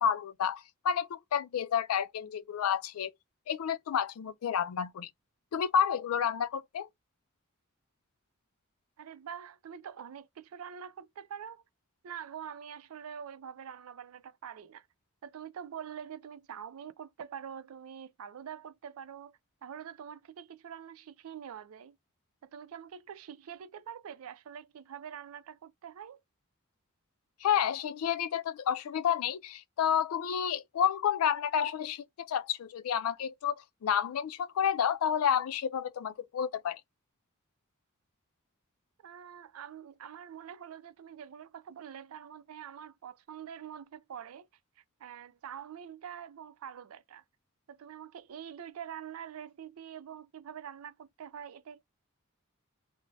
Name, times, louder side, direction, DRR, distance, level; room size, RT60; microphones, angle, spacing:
voice 1, 0.0-3.1 3.5-5.1 5.5-6.9 27.4-33.6 33.8-36.8, left 8 dB, 85° left, 0.4 m, -30 dB
voice 2, 9.0-11.6 12.0-14.9 15.2-22.0 22.4-26.2 39.0-44.5 44.8-47.2 47.7-51.8, right 8 dB, 80° right, 0.4 m, -45 dB
2.6 x 2.1 x 3.1 m
head